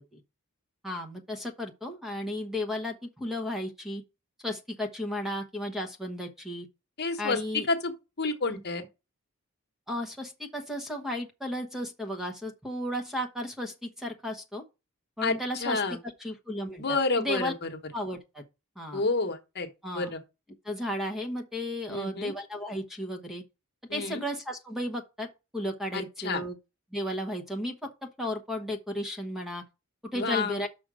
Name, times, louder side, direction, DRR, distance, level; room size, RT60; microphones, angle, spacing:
voice 1, 0.8-4.0 4.4-6.7 7.2-7.7 9.9-14.6 15.2-17.5 17.9-18.4 18.8-19.0 19.8-20.1 20.6-23.4 23.9-25.3 25.5-26.6 26.9-29.6 30.1-30.7, left 1 dB, ahead, 1.1 m, -34 dB
voice 2, 7.0-7.4 7.7-7.9 8.2-8.8 15.2-15.3 15.6-16.0 16.8-17.5 18.9-19.7 19.9-20.2 21.9-22.3 23.9-24.2 25.9-26.4 30.1-30.6, left 3 dB, 50° left, 1.2 m, -29 dB
6.2 x 5.1 x 6.1 m
head